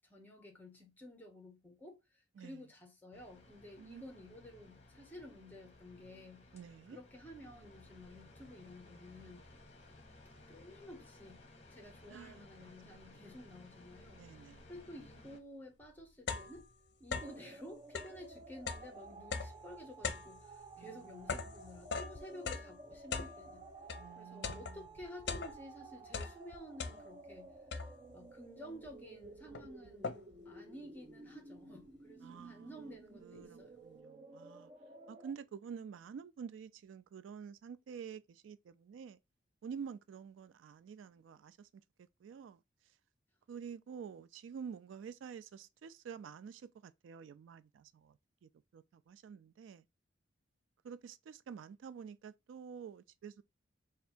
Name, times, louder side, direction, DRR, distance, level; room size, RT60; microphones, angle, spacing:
voice 1, 0.1-6.5 6.9-9.4 10.5-16.7 17.0-23.7 24.1-27.6 28.1-30.2 30.4-33.8, left 1 dB, 10° left, 1.0 m, -52 dB
sound 1, 3.1-15.4, left 2 dB, 35° left, 1.0 m, -58 dB
voice 2, 6.5-7.0 12.1-13.2 14.1-14.7 20.8-21.3 24.0-24.9 32.2-32.7 33.2-34.7 35.1-39.2 39.6-41.7 42.0-42.6 43.5-49.8 50.8-53.4, right 7 dB, 80° right, 0.3 m, -49 dB
sound 2, 15.4-15.5 15.8-17.5 17.8-24.1 24.4-25.8 26.1-27.3 27.7-28.2 28.9-29.0 29.2-30.5, left 5 dB, 60° left, 0.6 m, -42 dB
sound 3, 17.2-35.3, right 3 dB, 25° right, 0.5 m, -54 dB
3.4 x 2.4 x 4.3 m
head